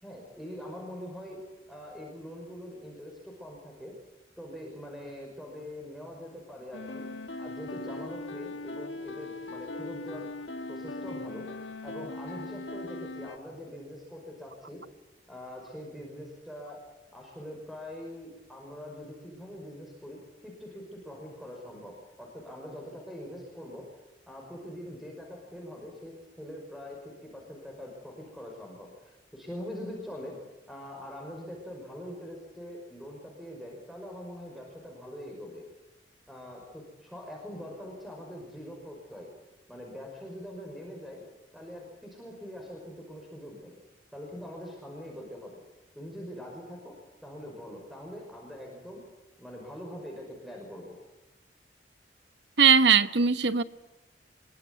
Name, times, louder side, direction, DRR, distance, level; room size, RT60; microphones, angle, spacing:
voice 1, 0.0-1.4 1.7-4.0 4.4-7.1 7.4-10.3 10.7-11.5 11.8-14.8 15.3-16.9 17.1-23.9 24.3-30.4 30.7-35.7 36.3-39.3 39.7-41.2 41.5-43.8 44.1-45.6 45.9-46.9 47.2-49.0 49.4-51.0, equal, ahead, 5.7 m, -43 dB
sound 1, 6.7-13.4, left 2 dB, 85° left, 2.1 m, -39 dB
voice 2, 52.6-53.6, right 6 dB, 70° right, 1.0 m, -20 dB
25.5 x 23.0 x 9.8 m
head